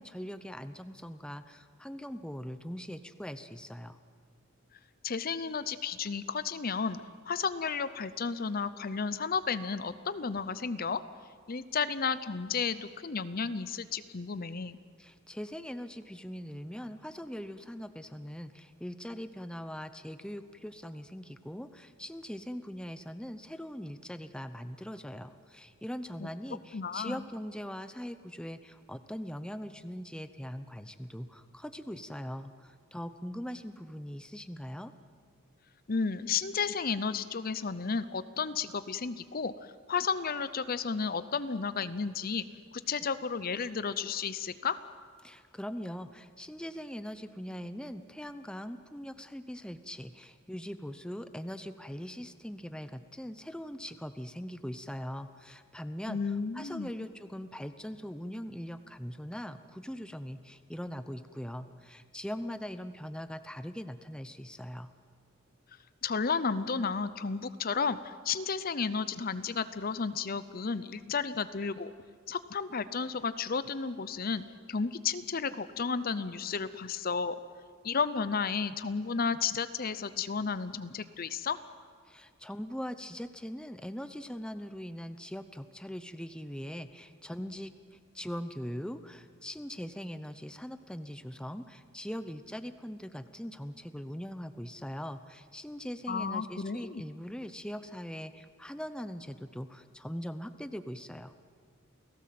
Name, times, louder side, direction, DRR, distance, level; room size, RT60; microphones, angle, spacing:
voice 1, 0.0-4.0 15.0-34.9 45.2-64.9 82.1-101.4, equal, 5° left, 10 dB, 0.8 m, -41 dB
voice 2, 5.0-11.0 11.5-14.8 26.2-26.3 26.7-27.2 35.9-39.5 39.9-42.4 42.7-44.8 56.1-56.9 66.0-71.9 72.3-77.4 77.8-81.6 96.1-97.0, left 5 dB, 45° left, 14 dB, 0.7 m, -32 dB
29.0 x 17.5 x 7.7 m, 2.1 s
head